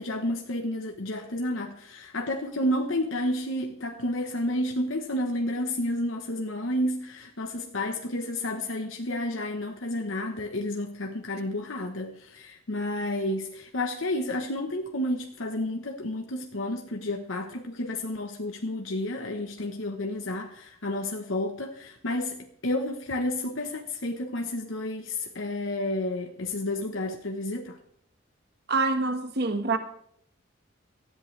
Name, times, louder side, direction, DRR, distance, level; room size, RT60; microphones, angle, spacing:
voice 1, 0.0-27.8, left 1 dB, 80° left, 1.1 m, -31 dB
voice 2, 28.7-29.8, right 3 dB, 55° right, 1.5 m, -26 dB
18.5 x 13.5 x 3.3 m
head